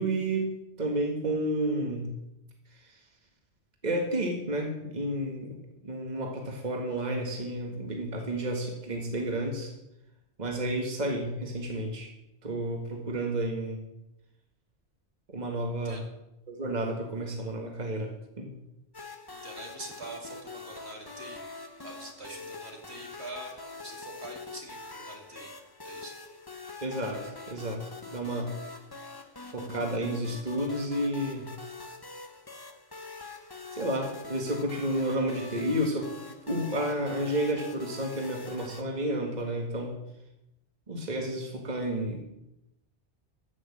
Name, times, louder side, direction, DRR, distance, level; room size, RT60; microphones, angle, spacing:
voice 1, 0.0-2.2 2.8-2.9 3.8-5.6 5.8-9.7 10.4-12.1 12.4-13.8 15.3-16.0 16.5-18.6 26.8-28.6 29.5-31.5 33.7-36.1 36.5-40.0 40.9-42.2, right 1 dB, 40° right, 2 dB, 1.9 m, -31 dB
sound 1, 18.9-38.8, left 3 dB, 20° left, 0.9 m, -44 dB
voice 2, 19.3-21.4 21.8-23.5 23.8-25.5 25.8-26.1, right 2 dB, 65° right, 1 dB, 2.6 m, -44 dB
14.5 x 6.4 x 7.4 m, 0.87 s
omnidirectional pair, 1.2 m